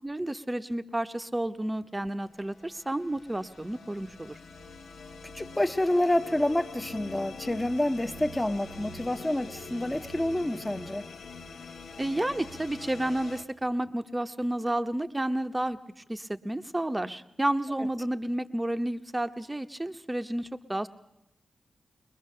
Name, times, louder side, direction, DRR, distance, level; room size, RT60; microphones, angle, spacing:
voice 1, 0.0-4.4 12.0-20.9, right 1 dB, 15° right, 9 dB, 0.9 m, -31 dB
sound 1, 2.5-13.4, left 3 dB, 90° left, 1.2 m, -44 dB
voice 2, 5.3-11.1, left 1 dB, 15° left, 10 dB, 0.9 m, -28 dB
21.5 x 21.5 x 6.6 m, 0.88 s
cardioid pair, 85°, 0 cm